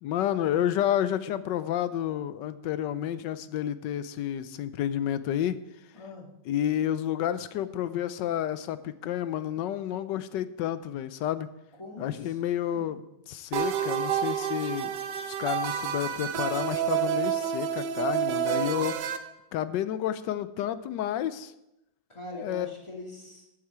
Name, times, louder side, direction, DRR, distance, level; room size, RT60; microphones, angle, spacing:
voice 1, 0.0-5.6 6.5-11.5 12.0-14.9 15.2-19.0 19.5-21.5 22.3-22.7, left 11 dB, 85° left, 14 dB, 1.3 m, -30 dB
voice 2, 5.9-6.3 11.8-13.0 22.1-23.4, left 1 dB, 15° left, -1 dB, 2.1 m, -43 dB
sound 1, 13.5-19.2, right 9 dB, 80° right, 1.5 m, -29 dB
13.0 x 8.6 x 4.7 m, 0.89 s
omnidirectional pair, 1.9 m